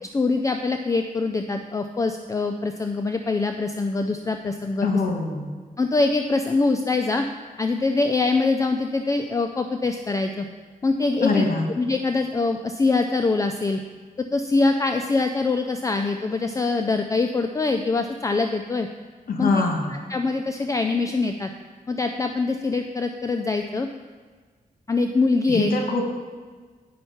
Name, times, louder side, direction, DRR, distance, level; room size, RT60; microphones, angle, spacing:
voice 1, 0.0-4.9 5.8-7.3 7.6-10.5 10.8-11.4 11.8-13.8 14.3-18.9 19.4-19.5 19.9-21.5 21.9-23.9 24.9-25.7, left 3 dB, 20° left, 5 dB, 0.3 m, -24 dB
voice 2, 4.8-5.5 11.2-11.6 19.3-19.9 25.5-26.1, left 3 dB, 80° left, 1 dB, 1.2 m, -23 dB
9.3 x 5.4 x 5.7 m, 1.5 s
wide cardioid pair, 155°, 15 cm